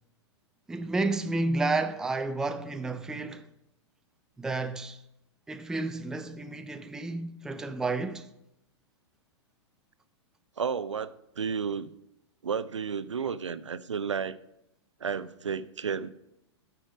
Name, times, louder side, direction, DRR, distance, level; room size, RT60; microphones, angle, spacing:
voice 1, 0.7-3.4 4.4-5.0 5.5-8.3, right 3 dB, 5° right, 0.3 m, -31 dB
voice 2, 10.6-11.9 12.4-14.4 15.0-16.1, right 6 dB, 85° right, 0.4 m, -32 dB
8.8 x 4.9 x 5.0 m
figure-of-eight pair, 105°, 15 cm